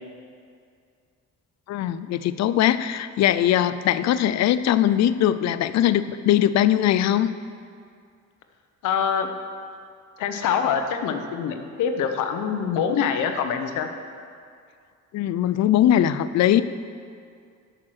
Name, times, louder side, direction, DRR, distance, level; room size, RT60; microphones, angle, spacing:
voice 1, 1.7-7.3 15.1-16.6, left 11 dB, 65° left, 14 dB, 0.5 m, -20 dB
voice 2, 8.8-9.3 10.2-13.9, left 7 dB, 85° left, 7 dB, 0.8 m, -25 dB
7.5 x 6.5 x 6.2 m, 2.3 s
cardioid pair, 90°, 30 cm